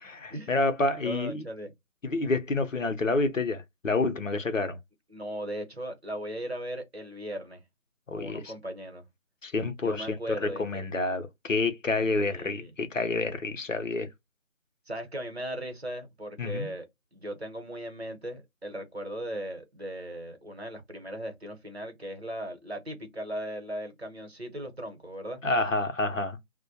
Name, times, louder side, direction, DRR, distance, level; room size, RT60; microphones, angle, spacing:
voice 1, 0.0-1.5 2.0-4.8 8.1-8.5 9.4-14.1 16.4-16.7 25.4-26.4, left 3 dB, 65° left, 0.7 m, -28 dB
voice 2, 1.0-1.7 5.1-7.6 8.1-9.0 9.8-10.9 11.9-12.7 14.9-25.4, right 1 dB, 45° right, 0.9 m, -38 dB
2.2 x 2.1 x 2.7 m
figure-of-eight pair, 170°, 42 cm